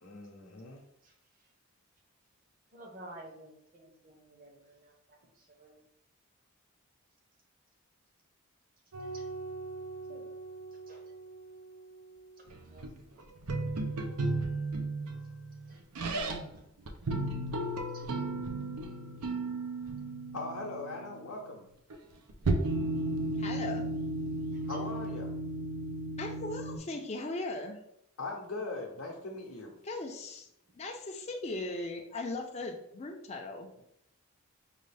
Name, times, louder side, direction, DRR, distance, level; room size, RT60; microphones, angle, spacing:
voice 1, 0.0-0.8 20.3-21.6 24.7-25.3 28.2-29.7, left 2 dB, 70° left, -2 dB, 0.7 m, -40 dB
voice 2, 2.7-4.7 5.6-5.7 9.1-9.2 10.1-10.2 10.9-11.0 12.7-12.8, right 1 dB, 40° right, 0 dB, 0.9 m, -50 dB
sound 1, 8.9-11.6 12.5-16.6 16.9-21.4 21.9-22.0 22.3-26.8, right 2 dB, 90° right, 0.6 m, -35 dB
voice 3, 23.4-23.9 26.2-27.8 29.8-30.5 30.8-33.8, left 2 dB, 30° left, 2 dB, 0.4 m, -38 dB
5.3 x 2.4 x 3.3 m, 0.77 s
head